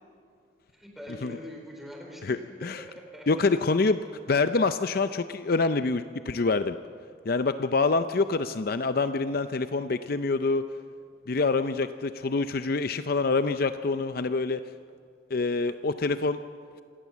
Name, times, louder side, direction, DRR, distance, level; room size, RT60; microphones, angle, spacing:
voice 1, 0.7-3.6, left 1 dB, ahead, 0 dB, 4.1 m, -44 dB
voice 2, 2.2-2.8 3.3-4.0 4.3-6.8 7.3-10.7 11.3-14.6 15.3-16.4, left 3 dB, 50° left, 11 dB, 0.5 m, -26 dB
27.0 x 17.5 x 7.3 m, 2.4 s
head